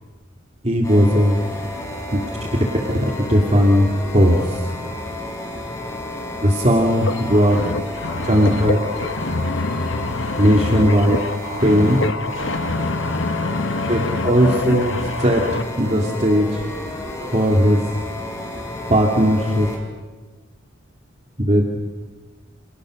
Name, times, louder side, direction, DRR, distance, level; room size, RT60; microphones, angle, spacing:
voice 1, 0.6-1.4 2.1-2.2 3.3-3.9 4.1-4.4 6.4-7.6 8.2-8.8 10.4-11.1 11.6-12.0 13.9-14.9 15.2-15.4 15.8-16.6 17.3-17.8 18.9-19.7 21.4-21.6, equal, 35° right, 0 dB, 2.9 m, -16 dB
sound 1, 0.8-19.8, left 1 dB, 15° left, 6.0 m, -31 dB
voice 2, 7.0-15.6, left 2 dB, 70° left, 11 dB, 1.4 m, -26 dB
29.5 x 29.0 x 6.6 m, 1.3 s
head